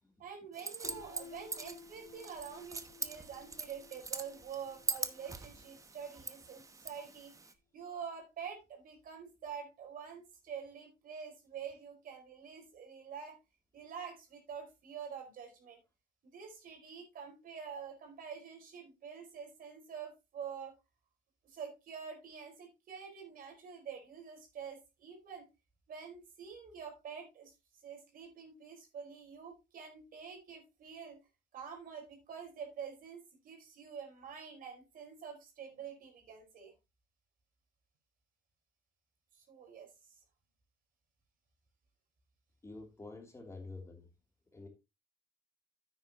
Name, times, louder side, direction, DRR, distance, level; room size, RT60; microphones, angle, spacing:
voice 1, 0.2-7.3 7.7-13.4 13.7-15.8 16.2-20.7 21.4-25.4 25.9-27.5 27.8-31.2 31.5-36.7 39.4-39.9, right 7 dB, 55° right, 3 dB, 4.5 m, -47 dB
sound 1, 0.5-7.5, right 3 dB, 20° right, 1.0 m, -43 dB
Piano, 0.8-6.7, left 5 dB, 50° left, 4.3 m, -56 dB
voice 2, 42.6-44.1 44.5-44.7, left 3 dB, 15° left, 2 dB, 2.9 m, -48 dB
10.0 x 8.6 x 2.9 m, 0.25 s
cardioid pair, 110°, 17 cm